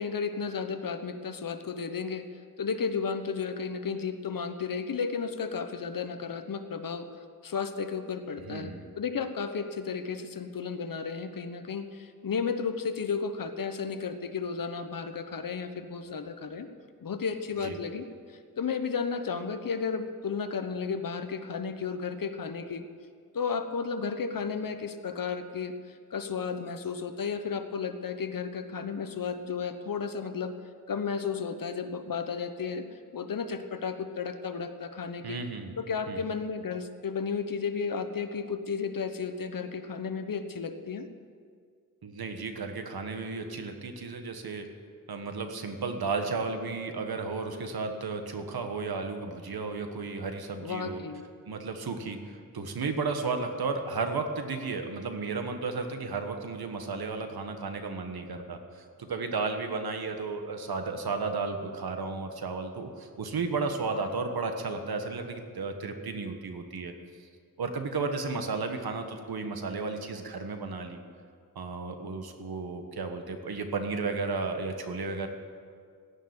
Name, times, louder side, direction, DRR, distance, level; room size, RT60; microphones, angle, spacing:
voice 1, 0.0-2.3 2.6-7.1 7.4-16.7 17.0-22.8 23.3-25.7 26.1-30.5 30.9-32.9 33.1-35.4 35.8-41.1 50.6-51.2, left 5 dB, 65° left, 9 dB, 1.1 m, -33 dB
voice 2, 8.4-8.9 17.6-17.8 35.2-35.7 36.1-36.2 42.0-44.7 45.1-51.0 51.4-66.9 67.6-71.0 71.5-75.3, right 4 dB, 85° right, 6 dB, 1.4 m, -33 dB
16.0 x 6.8 x 9.7 m, 2.1 s
wide cardioid pair, 115°, 36 cm